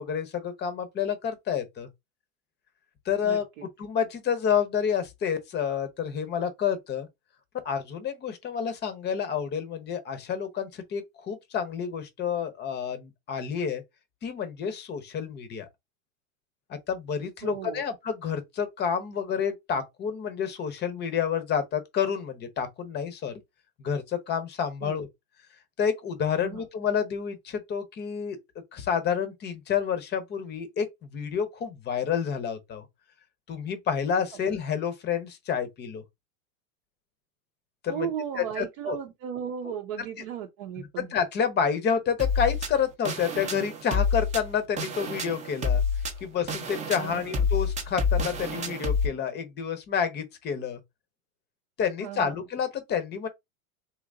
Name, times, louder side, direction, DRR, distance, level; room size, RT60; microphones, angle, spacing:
voice 1, 0.0-1.9 3.1-3.4 3.8-7.1 7.6-13.8 14.2-15.7 16.7-23.4 23.8-25.1 25.8-28.4 28.7-32.9 33.5-36.0 37.8-38.1 38.4-39.0 39.7-39.8 41.0-45.8 46.2-50.8 51.8-53.3, left 7 dB, 25° left, 0.7 m, -29 dB
voice 2, 3.2-3.6 17.4-17.8 24.8-25.0 26.4-26.7 37.9-41.1 47.0-47.4 52.0-52.4, right 8 dB, 50° right, 0.7 m, -35 dB
sound 1, 42.2-49.1, left 4 dB, 15° right, 0.6 m, -28 dB
3.6 x 2.8 x 2.5 m
hypercardioid pair, 125°, 42 cm